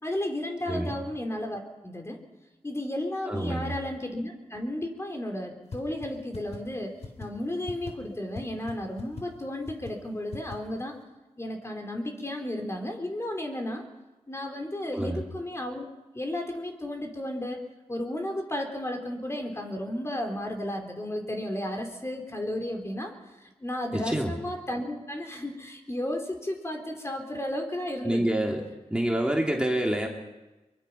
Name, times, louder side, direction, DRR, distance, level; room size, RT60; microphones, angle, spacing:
voice 1, 0.0-2.2 2.6-11.0 11.4-13.9 14.3-15.9 16.1-17.6 17.9-23.1 23.4-28.3, left 1 dB, 25° left, 3 dB, 3.9 m, -33 dB
voice 2, 0.7-1.0 3.3-3.7 14.9-15.2 23.9-24.3 28.0-28.6 28.9-30.1, right 1 dB, 10° right, 0 dB, 3.2 m, -27 dB
sound 1, 5.7-5.8 6.0-6.1 6.3-6.6 7.0-7.3 7.7-7.9 8.3-8.4 8.7-8.8 9.0-9.2 9.7-9.9 10.3-10.6, left 3 dB, 65° left, 3.7 m, -38 dB
23.5 x 23.0 x 5.8 m, 1.1 s
cardioid pair, 65°, 12 cm